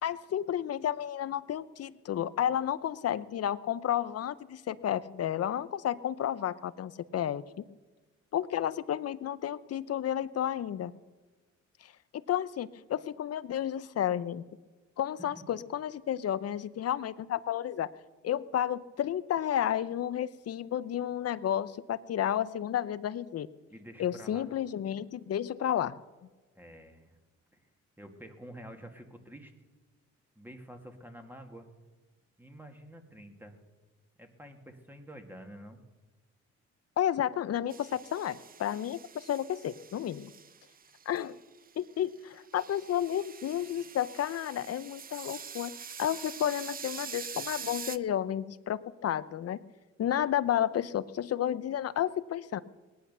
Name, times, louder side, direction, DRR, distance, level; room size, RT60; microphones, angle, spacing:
voice 1, 0.0-7.4 8.3-10.9 11.8-11.9 12.3-14.4 15.0-17.9 18.2-23.5 24.0-26.0 37.0-40.3 41.1-41.4 41.8-45.7 46.0-49.6 50.0-52.6, left 10 dB, 55° left, 16 dB, 0.7 m, -31 dB
voice 2, 23.7-24.5 26.5-27.2 27.5-27.6 28.0-29.5 30.4-31.7 32.4-33.5 34.2-35.8, equal, 5° right, 4 dB, 2.2 m, -48 dB
sound 1, 37.7-41.7 42.1-48.0, right 7 dB, 30° right, 0.5 m, -45 dB
18.5 x 10.5 x 6.8 m, 1.3 s
cardioid pair, 90°, 30 cm